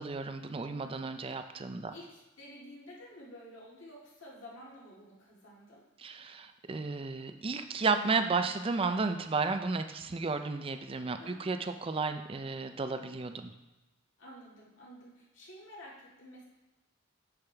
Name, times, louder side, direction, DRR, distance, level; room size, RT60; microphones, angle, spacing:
voice 1, 0.0-1.9 6.0-13.5, right 4 dB, 25° right, 8 dB, 0.4 m, -33 dB
voice 2, 1.9-5.8 11.2-11.5 14.2-16.4, equal, 65° left, -5 dB, 2.2 m, -51 dB
7.4 x 7.0 x 3.4 m, 1.0 s
head